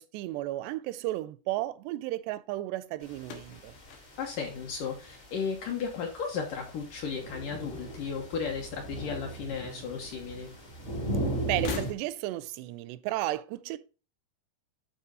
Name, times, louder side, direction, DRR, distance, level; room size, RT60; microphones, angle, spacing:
voice 1, 0.0-3.7 11.5-13.8, right 16 dB, 85° right, 2.6 m, -33 dB
sound 1, 3.0-11.9, right 1 dB, 40° left, 1.0 m, -38 dB
sound 2, 3.2-5.5 5.8-6.4 7.5-8.5 8.8-8.9 10.0-10.1 11.5-12.5, left 7 dB, 90° left, 3.4 m, -44 dB
voice 2, 4.2-10.5, left 6 dB, 65° left, 2.2 m, -35 dB
11.0 x 4.3 x 3.9 m
omnidirectional pair, 4.9 m